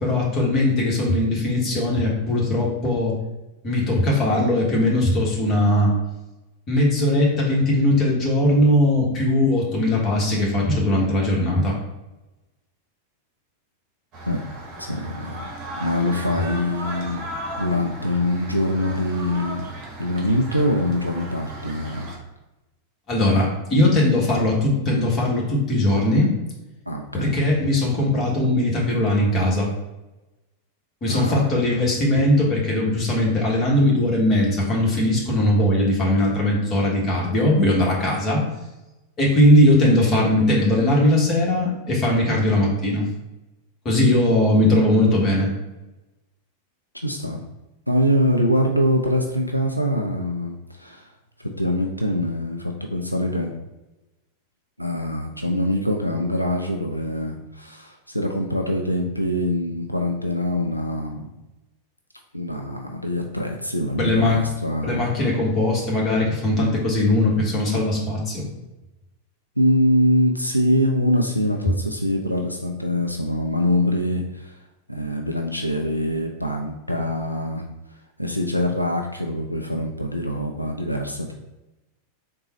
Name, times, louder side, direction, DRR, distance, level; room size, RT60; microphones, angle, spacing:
voice 1, 0.0-3.2 3.6-5.9 6.7-11.7 23.1-26.3 27.1-29.7 31.0-38.4 39.2-43.0 43.8-45.5 64.0-64.4 64.8-68.5, left 1 dB, 30° left, -3 dB, 1.3 m, -19 dB
sound 1, 14.1-22.2, right 1 dB, 35° right, 1.0 m, -36 dB
voice 2, 14.8-15.4 15.8-17.3 17.6-19.7 20.0-22.1 26.9-27.3 31.1-31.8 46.9-47.4 47.9-51.1 51.4-53.5 54.8-61.3 62.3-65.3 69.6-74.6 74.9-77.7 78.2-81.3, left 1 dB, 90° left, 2 dB, 0.3 m, -24 dB
3.8 x 2.2 x 4.1 m, 0.98 s
figure-of-eight pair, 90°, 0 cm